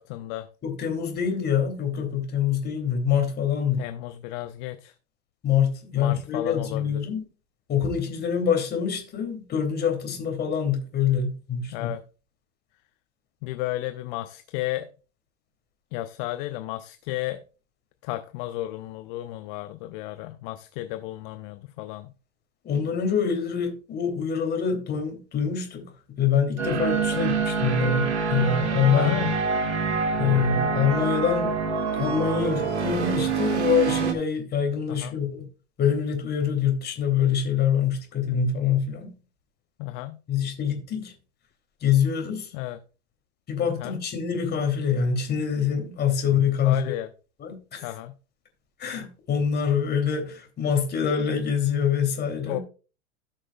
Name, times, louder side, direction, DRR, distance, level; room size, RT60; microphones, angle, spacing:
voice 1, 0.0-0.5 3.8-4.9 5.9-7.0 11.7-12.0 13.4-14.9 15.9-17.4 18.0-22.1 27.1-27.2 28.9-29.3 34.9-35.2 39.8-40.2 42.5-42.8 43.7-44.0 46.6-47.1 47.8-48.1 52.5-52.6, left 16 dB, 45° left, 0.7 m, -33 dB
voice 2, 0.6-3.9 5.4-7.2 7.7-11.9 22.6-29.2 30.2-31.5 32.0-35.4 35.8-39.1 40.3-41.1 41.8-42.5 43.5-46.9 47.4-47.9 48.8-52.6, left 7 dB, 30° left, 3.0 m, -25 dB
sound 1, 26.6-34.1, right 5 dB, 65° right, 1.9 m, -26 dB
17.0 x 6.2 x 2.3 m
figure-of-eight pair, 90°, 36 cm